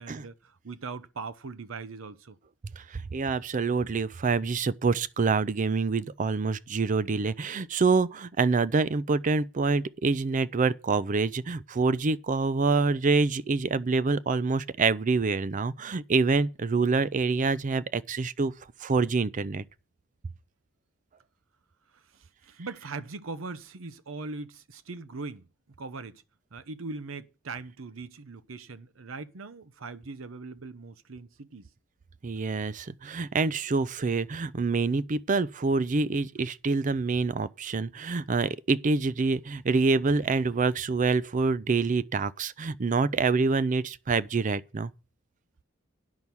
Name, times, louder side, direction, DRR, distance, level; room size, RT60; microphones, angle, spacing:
voice 1, 0.0-2.4 21.9-25.5 25.8-26.2 26.5-31.7, right 3 dB, 75° right, 0.8 m, -40 dB
voice 2, 2.8-18.5 18.8-19.6 32.2-44.9, right 4 dB, 40° right, 0.5 m, -26 dB
9.6 x 6.0 x 7.0 m
head